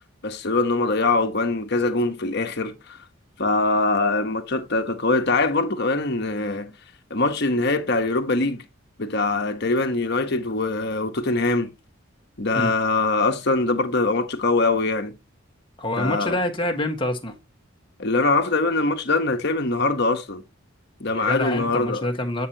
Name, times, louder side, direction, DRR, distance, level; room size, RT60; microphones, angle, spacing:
voice 1, 0.2-3.0 3.4-6.7 7.1-8.6 9.0-11.7 12.4-15.2 16.0-16.4 18.0-20.4 21.0-22.1, left 3 dB, 55° left, 1.2 m, -23 dB
voice 2, 15.8-17.3 21.1-22.5, left 1 dB, 25° left, 1.4 m, -26 dB
9.6 x 5.7 x 2.8 m
head